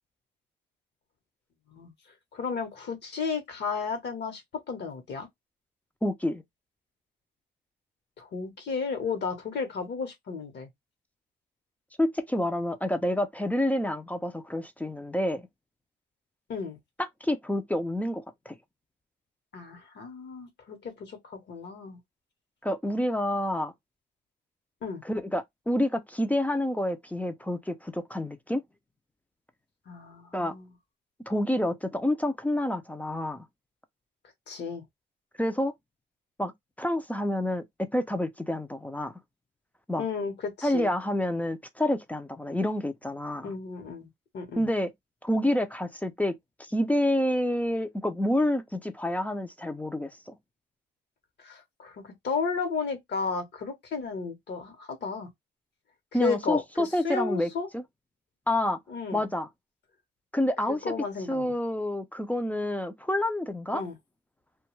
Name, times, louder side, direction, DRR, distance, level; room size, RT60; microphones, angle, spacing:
voice 1, 2.3-4.4 4.7-5.3 8.2-10.7 16.5-16.8 19.5-22.0 24.8-25.0 29.9-30.7 34.5-34.8 40.0-40.9 43.4-44.1 44.3-44.7 51.4-55.3 56.1-57.7 58.9-59.2 60.7-61.5 63.7-64.0, left 5 dB, 60° left, 0.9 m, -33 dB
voice 2, 6.0-6.4 12.0-15.5 17.0-18.6 22.6-23.7 25.0-28.6 30.3-30.5 31.3-33.5 35.4-35.7 36.4-36.5 36.8-39.1 39.9-40.1 40.6-43.5 44.6-44.9 45.2-46.3 46.7-50.4 56.1-57.8 58.5-58.8 59.1-59.5 60.3-60.8 61.3-63.8, left 1 dB, 10° left, 0.4 m, -28 dB
2.2 x 2.2 x 3.0 m
cardioid pair, 90°, 20 cm